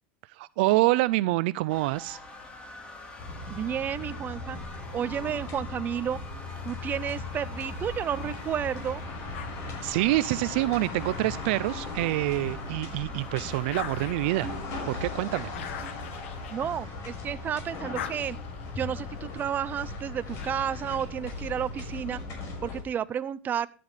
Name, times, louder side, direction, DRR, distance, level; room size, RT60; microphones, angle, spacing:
voice 1, 0.3-2.2 9.8-14.5 14.9-15.5, right 19 dB, 70° right, 17 dB, 0.5 m, -26 dB
sound 1, 1.7-20.8, left 2 dB, 20° left, 3.7 m, -48 dB
sound 2, 3.2-22.8, left 3 dB, 50° left, 5.5 m, -38 dB
voice 2, 3.5-4.6 4.9-6.2 6.6-9.0 15.8-15.9 16.5-18.4 18.8-22.2 22.6-23.7, right 9 dB, 30° right, 15 dB, 0.7 m, -31 dB
sound 3, 9.3-12.0 12.5-17.3 17.6-20.9, left 10 dB, 85° left, 1.3 m, -44 dB
14.5 x 9.4 x 3.3 m, 0.38 s
supercardioid pair, 120°, 6 cm